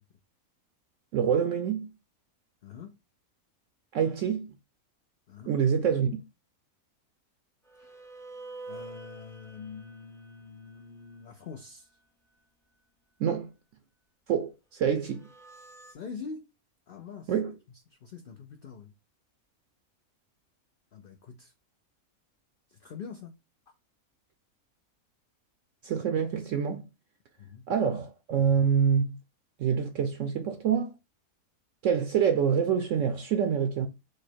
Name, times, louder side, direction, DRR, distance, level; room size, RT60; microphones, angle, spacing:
voice 1, 1.1-1.9 3.9-4.5 5.5-6.2 13.2-13.5 14.3-15.2 17.3-17.5 25.8-26.8 27.7-29.2 29.6-30.9 31.8-33.9, right 7 dB, 70° right, 0.9 m, -26 dB
voice 2, 2.6-3.0 5.3-5.6 7.8-7.9 8.7-11.9 15.9-16.5 16.9-17.3 17.9-18.9 20.9-21.5 22.7-23.4 27.4-27.6, left 5 dB, 65° left, 0.5 m, -44 dB
sound 1, 7.6-12.0 15.0-15.9, right 3 dB, 5° left, 0.3 m, -48 dB
4.9 x 2.1 x 4.4 m
omnidirectional pair, 1.5 m